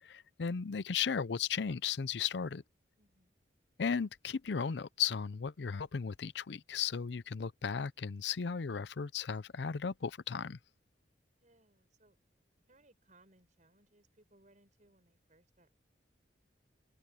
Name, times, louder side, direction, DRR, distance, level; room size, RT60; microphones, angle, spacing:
voice 1, 0.0-2.6 3.8-10.6, left 6 dB, 70° left, 0.5 m, -35 dB
voice 2, 3.0-3.4 11.4-12.2 12.7-15.8, right 2 dB, 45° right, 7.5 m, -67 dB
head